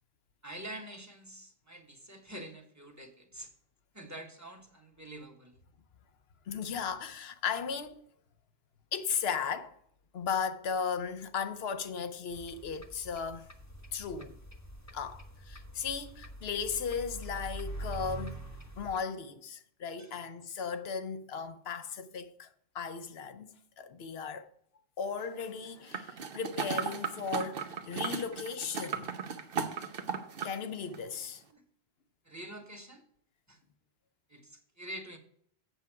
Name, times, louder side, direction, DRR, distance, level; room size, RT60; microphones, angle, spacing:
voice 1, 0.4-3.5 3.9-5.6 20.0-20.2 31.5-31.6 32.2-33.0 33.5-33.6 34.3-35.2, right 1 dB, 15° right, 1.2 m, -46 dB
voice 2, 6.5-8.0 8.9-9.7 10.1-13.5 13.9-14.3 14.9-18.4 18.8-22.5 22.7-24.5 25.0-29.1 30.4-31.4, left 6 dB, 75° left, 1.0 m, -36 dB
sound 1, 12.3-19.0, right 1 dB, 15° left, 1.1 m, -44 dB
sound 2, 25.9-30.6 30.9-31.0, right 6 dB, 65° right, 1.0 m, -36 dB
8.2 x 7.1 x 4.7 m
omnidirectional pair, 1.1 m